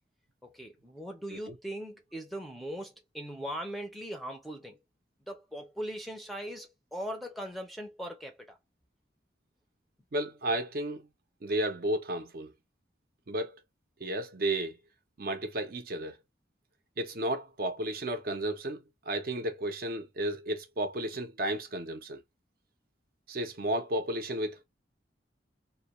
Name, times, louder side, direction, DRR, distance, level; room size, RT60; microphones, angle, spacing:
voice 1, 0.4-4.8 5.3-8.6, equal, ahead, 0.5 m, -40 dB
voice 2, 10.1-11.1 11.4-12.5 13.3-13.6 14.0-14.8 15.2-16.2 17.0-22.2 23.3-24.6, right 1 dB, 50° right, 0.6 m, -33 dB
2.2 x 2.2 x 2.9 m
head